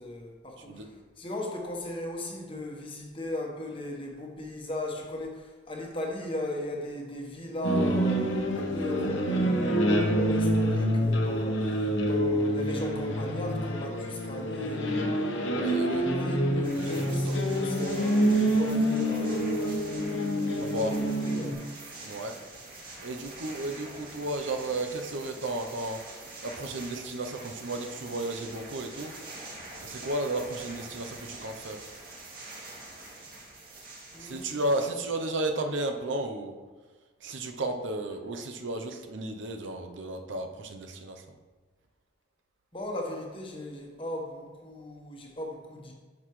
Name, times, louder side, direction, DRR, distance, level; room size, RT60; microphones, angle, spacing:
voice 1, 0.0-15.2 15.8-20.1 20.8-21.6 34.1-34.5 42.7-45.9, left 1 dB, 25° left, 0 dB, 1.2 m, -37 dB
sound 1, 7.6-21.5, equal, 75° left, 1.1 m, -27 dB
voice 2, 15.5-16.4 16.7-17.7 20.6-20.9 22.0-22.3 23.0-26.0 26.4-29.1 29.8-31.8 34.2-36.5 37.2-41.2, right 2 dB, 70° right, 5 dB, 0.7 m, -33 dB
sound 2, 16.6-34.9, right 2 dB, 50° right, 2.2 m, -45 dB
10.5 x 6.0 x 3.2 m, 1.4 s
head